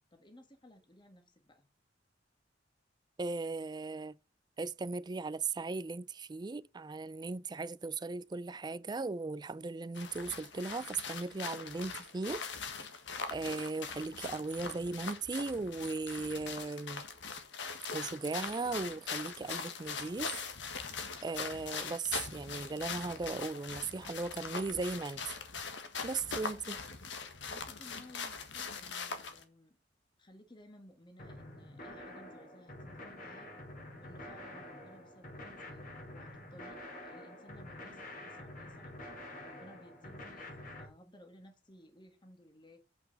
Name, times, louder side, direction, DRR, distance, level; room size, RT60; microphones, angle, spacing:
voice 1, 0.1-1.6 27.5-29.7 30.2-33.5 34.0-38.9 39.4-42.8, left 1 dB, 25° left, 1.6 m, -58 dB
voice 2, 3.2-4.2 4.6-12.4 13.3-17.1 17.9-20.4 21.2-25.4 26.0-26.8, right 3 dB, 25° right, 0.4 m, -37 dB
sound 1, 10.0-29.4, left 5 dB, 75° left, 1.6 m, -42 dB
sound 2, 31.2-40.8, left 1 dB, 50° left, 3.0 m, -48 dB
8.1 x 6.1 x 5.2 m
head